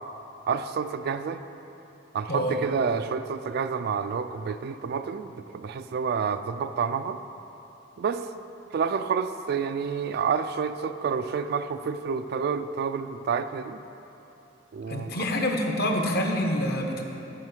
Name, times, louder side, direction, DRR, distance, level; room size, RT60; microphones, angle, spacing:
voice 1, 0.5-1.4 2.1-7.2 8.0-8.3 8.7-13.8 14.7-15.2, right 6 dB, 55° right, 10 dB, 0.3 m, -29 dB
voice 2, 2.3-2.6 14.9-17.0, left 1 dB, 55° left, 2 dB, 0.9 m, -26 dB
7.5 x 5.7 x 6.2 m, 2.9 s
head